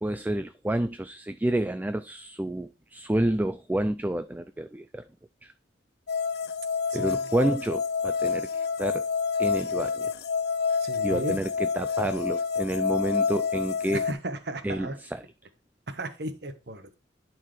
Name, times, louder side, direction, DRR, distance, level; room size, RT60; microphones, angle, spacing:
voice 1, 0.0-5.0 5.4-5.5 6.9-9.1 9.4-10.1 11.0-14.0 14.6-15.2, right 1 dB, 10° right, 0.3 m, -29 dB
sound 1, 6.1-14.1, left 5 dB, 60° left, 0.6 m, -28 dB
voice 2, 6.9-7.3 10.8-11.4 13.9-15.0 15.9-16.9, right 1 dB, 60° right, 1.1 m, -35 dB
11.0 x 4.7 x 3.1 m
head